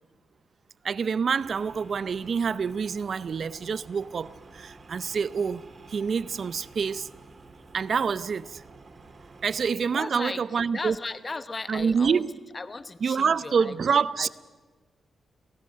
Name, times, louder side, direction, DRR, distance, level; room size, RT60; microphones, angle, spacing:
voice 1, 0.8-5.6 5.9-7.1 7.7-8.6 9.4-10.9 11.7-12.3 13.0-14.3, right 6 dB, 55° right, 0.6 m, -27 dB
sound 1, 1.4-9.7, right 3 dB, 40° right, 2.3 m, -50 dB
voice 2, 9.9-12.2 12.5-14.3, left 3 dB, 30° left, 1.0 m, -37 dB
29.5 x 17.5 x 6.4 m
cardioid pair, 90°, 0 cm